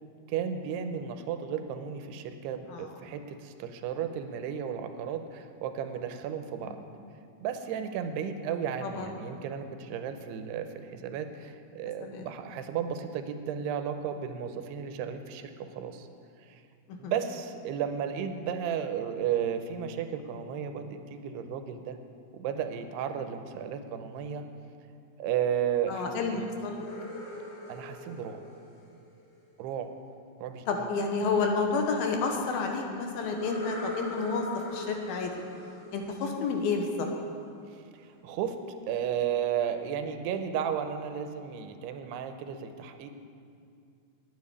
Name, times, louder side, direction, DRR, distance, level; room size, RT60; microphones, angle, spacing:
voice 1, 0.3-6.8 7.4-16.1 16.4-16.6 16.9-22.0 22.3-24.5 25.2-26.4 27.7-28.4 29.6-29.9 30.4-30.9 37.7-38.6 38.9-43.1, right 8 dB, 90° right, 8 dB, 2.8 m, -34 dB
voice 2, 25.9-26.9 30.7-35.3 35.9-37.1, left 4 dB, 75° left, 3 dB, 2.7 m, -30 dB
sound 1, 26.6-29.6 33.2-36.9, left 2 dB, 50° left, 1.9 m, -41 dB
9.5 x 8.6 x 9.5 m, 2.4 s
omnidirectional pair, 4.6 m